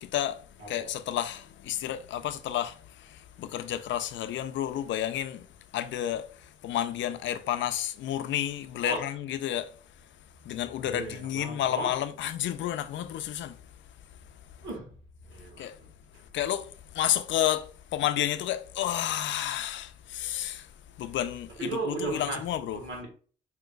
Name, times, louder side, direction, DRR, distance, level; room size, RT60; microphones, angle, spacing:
voice 1, 0.0-5.5 5.7-9.7 10.4-13.6 15.6-15.8 16.3-20.7 21.0-22.8, left 11 dB, 70° left, 0.4 m, -31 dB
voice 2, 10.8-11.9 14.6-15.0 15.3-15.7 16.1-16.2 21.6-22.4 22.7-23.1, right 3 dB, 75° right, 1.5 m, -35 dB
5.1 x 2.8 x 2.3 m
cardioid pair, 90°, 20 cm